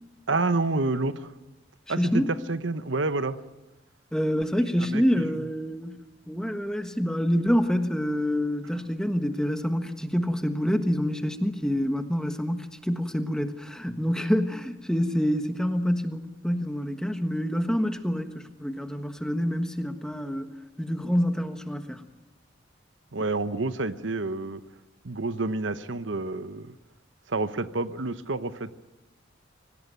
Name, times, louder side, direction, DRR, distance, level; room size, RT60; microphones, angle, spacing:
voice 1, 0.3-1.3 1.9-2.2 2.5-3.4 4.8-5.0 23.1-24.6 25.0-26.7 27.3-28.7, right 3 dB, 75° right, 12 dB, 1.0 m, -28 dB
voice 2, 1.9-2.3 4.1-6.0 6.3-22.0, equal, 5° left, 7 dB, 1.4 m, -27 dB
25.0 x 18.0 x 9.2 m, 1.1 s
head